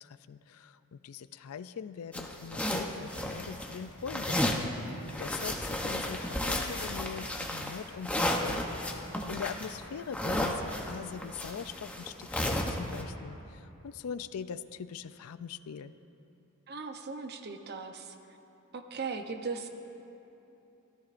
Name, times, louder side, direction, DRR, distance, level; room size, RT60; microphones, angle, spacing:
voice 1, 0.0-4.6 5.2-15.9, left 7 dB, 75° left, 13 dB, 0.4 m, -42 dB
sound 1, 2.1-3.8 4.1-4.7 5.1-13.0, left 1 dB, 5° left, 0.8 m, -33 dB
voice 2, 16.7-18.1 18.7-19.7, right 4 dB, 45° right, 6 dB, 0.8 m, -38 dB
24.0 x 14.5 x 2.5 m, 3.0 s
head